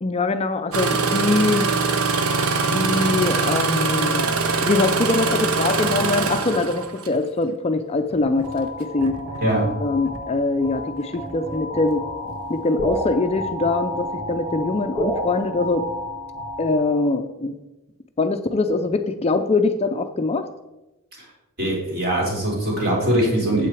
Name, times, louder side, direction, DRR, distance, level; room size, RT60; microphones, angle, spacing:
voice 1, 0.0-1.7 2.6-4.3 4.6-9.1 9.8-12.0 12.5-15.8 16.6-17.5 18.2-20.5, left 3 dB, 30° left, 8 dB, 0.4 m, -23 dB
Engine starting, 0.7-7.2 8.1-8.4 9.0-9.4 10.1-10.2, right 4 dB, 75° right, 0.8 m, -23 dB
sound 1, 8.4-17.1, equal, 15° right, 2.0 m, -31 dB
voice 2, 21.6-23.7, right 1 dB, 45° right, -3 dB, 3.8 m, -21 dB
8.8 x 7.6 x 4.7 m, 1.0 s
head